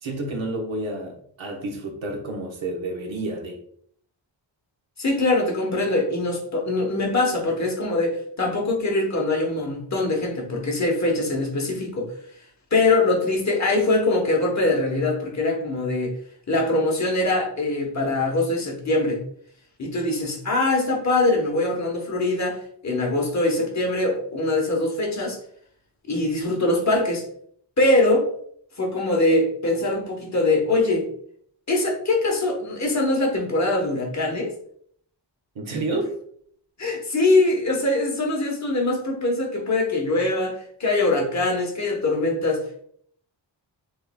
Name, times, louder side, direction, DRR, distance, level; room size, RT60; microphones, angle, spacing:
voice 1, 0.0-3.6 35.5-36.2, right 2 dB, 90° right, 2 dB, 1.1 m, -30 dB
voice 2, 5.0-12.1 12.7-16.2 16.5-19.2 19.8-25.4 26.1-27.3 27.8-28.3 28.8-31.1 31.7-34.5 36.8-42.8, left 2 dB, 40° left, 0 dB, 1.0 m, -23 dB
5.5 x 3.2 x 2.2 m, 0.63 s
wide cardioid pair, 175°, 45 cm